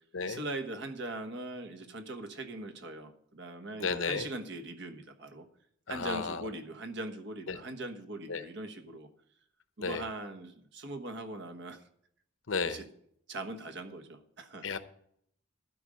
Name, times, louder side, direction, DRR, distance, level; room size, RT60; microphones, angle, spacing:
voice 1, 0.3-5.5 5.9-9.1 9.8-11.8 12.6-12.9 13.3-14.7, right 2 dB, 65° right, 7 dB, 1.3 m, -41 dB
voice 2, 3.8-4.3 5.9-6.4 7.5-7.6 8.3-8.4 9.8-10.0 12.5-12.8 14.6-14.8, left 5 dB, 75° left, 11 dB, 0.8 m, -33 dB
12.5 x 5.1 x 8.8 m, 0.69 s
head